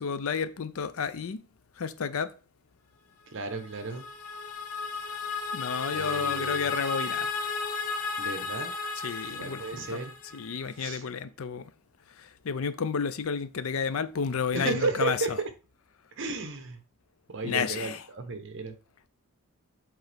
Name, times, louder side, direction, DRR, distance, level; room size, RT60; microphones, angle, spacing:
voice 1, 0.0-1.4 1.8-2.4 5.5-7.4 9.0-10.0 10.3-11.7 12.1-15.4 17.4-18.1, left 6 dB, 65° left, 0.5 m, -31 dB
voice 2, 3.3-4.1 5.9-6.8 8.2-8.7 9.3-10.1 10.8-11.0 14.5-15.3 16.2-16.8 17.3-18.7, right 3 dB, 55° right, 1.0 m, -33 dB
sound 1, 3.5-10.6, left 4 dB, 85° left, 1.0 m, -34 dB
7.9 x 3.8 x 3.5 m
head